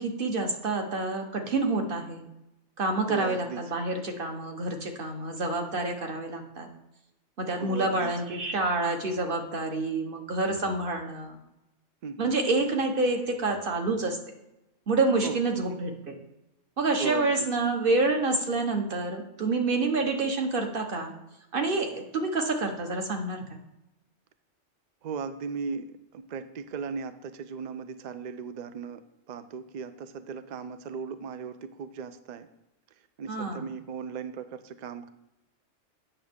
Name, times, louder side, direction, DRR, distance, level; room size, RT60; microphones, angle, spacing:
voice 1, 0.0-2.2 2.8-6.7 7.4-11.4 12.2-14.2 14.9-16.2 16.8-21.1 21.5-23.6 33.3-33.6, right 3 dB, 45° right, 4 dB, 1.2 m, -28 dB
voice 2, 3.1-3.6 7.6-8.1 12.0-12.3 15.2-15.4 17.0-17.4 25.0-29.0 29.3-32.5 33.2-35.1, right 6 dB, 80° right, 10 dB, 0.4 m, -37 dB
8.7 x 6.3 x 3.5 m, 0.91 s
omnidirectional pair, 1.3 m